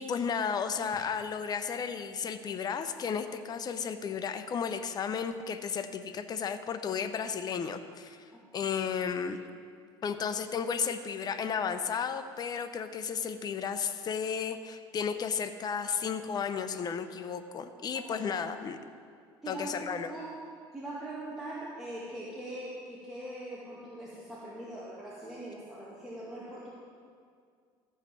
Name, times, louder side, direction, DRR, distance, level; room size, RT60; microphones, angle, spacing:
voice 1, 0.0-8.2 8.5-9.4 10.0-18.8 19.5-20.1, left 6 dB, 35° left, 9 dB, 0.7 m, -33 dB
voice 2, 17.9-18.4 19.4-20.3 20.7-26.7, right 1 dB, 5° right, -8 dB, 2.2 m, -42 dB
13.5 x 5.6 x 7.5 m, 2.1 s
supercardioid pair, 105°, 11 cm